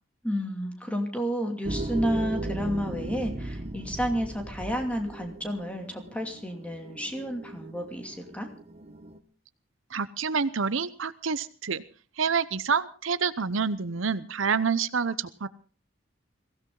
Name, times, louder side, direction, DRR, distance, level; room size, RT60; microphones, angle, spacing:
voice 1, 0.2-8.5, equal, 5° left, 3 dB, 2.6 m, -31 dB
sound 1, 1.6-9.2, right 2 dB, 30° right, 1.0 m, -37 dB
voice 2, 9.9-11.8 12.2-15.5, right 5 dB, 75° right, 15 dB, 0.8 m, -28 dB
22.5 x 16.0 x 3.9 m, 0.37 s
head